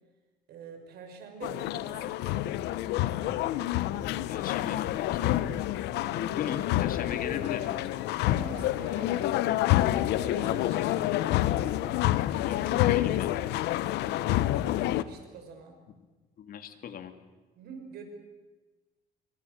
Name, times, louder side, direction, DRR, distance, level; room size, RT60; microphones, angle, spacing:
voice 1, 0.5-2.8 8.2-12.0 14.0-14.5 14.8-15.8 17.6-18.0, right 6 dB, 70° right, 5 dB, 6.0 m, -46 dB
sound 1, 1.4-15.0, left 14 dB, 85° left, 0.9 m, -28 dB
voice 2, 3.9-5.5 6.2-7.7 12.3-13.5 16.4-17.1, left 8 dB, 60° left, 8 dB, 2.6 m, -38 dB
28.5 x 24.5 x 6.7 m, 1.2 s
cardioid pair, 110°, 17 cm